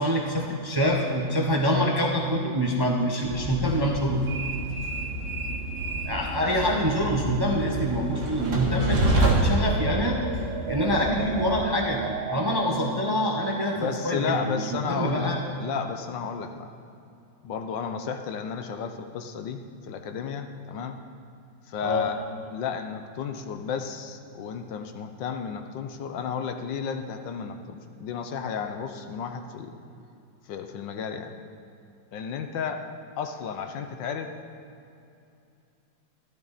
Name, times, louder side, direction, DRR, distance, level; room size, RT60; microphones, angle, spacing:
voice 1, 0.0-4.2 6.0-10.2 10.7-15.4 21.8-22.1, equal, 20° right, -1 dB, 0.7 m, -25 dB
Train, 3.2-11.6, right 1 dB, 60° right, 2.2 m, -28 dB
sound 1, 4.6-13.0, right 6 dB, 80° right, 0.6 m, -39 dB
voice 2, 13.7-15.3 15.6-16.7 17.4-21.0 21.7-22.2 22.5-29.8 30.5-31.3 32.1-32.8 33.1-34.3, left 6 dB, 75° left, 7 dB, 1.4 m, -33 dB
13.5 x 12.5 x 4.2 m, 2.6 s
omnidirectional pair, 2.1 m